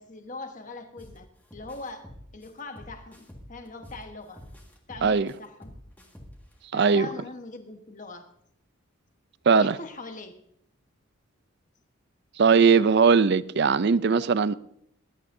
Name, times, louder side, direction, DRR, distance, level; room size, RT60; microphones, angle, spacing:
voice 1, 0.0-4.4 4.9-5.7 6.7-8.3 9.5-10.4, left 2 dB, 35° left, 1.2 m, -41 dB
sound 1, 1.0-1.2 1.5-4.0 4.4-6.5, equal, 10° left, 1.8 m, -47 dB
voice 2, 5.0-5.3 6.7-7.1 9.5-9.8 12.4-14.5, right 5 dB, 50° right, 0.4 m, -20 dB
20.5 x 11.5 x 2.7 m
head